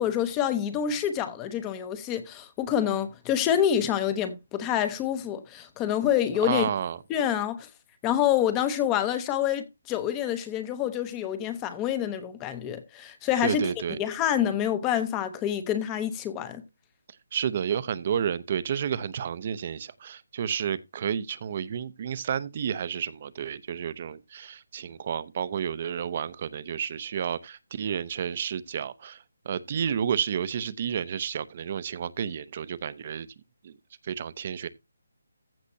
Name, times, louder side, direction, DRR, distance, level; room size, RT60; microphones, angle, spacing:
voice 1, 0.0-6.7 7.1-7.7 8.0-13.6 14.0-16.6, left 10 dB, 10° left, 0.7 m, -27 dB
voice 2, 6.4-7.0 13.4-14.0 17.3-33.3 33.6-33.7 34.0-34.7, right 8 dB, 30° right, 0.7 m, -31 dB
15.0 x 6.5 x 2.7 m
hypercardioid pair, 175°, 0 cm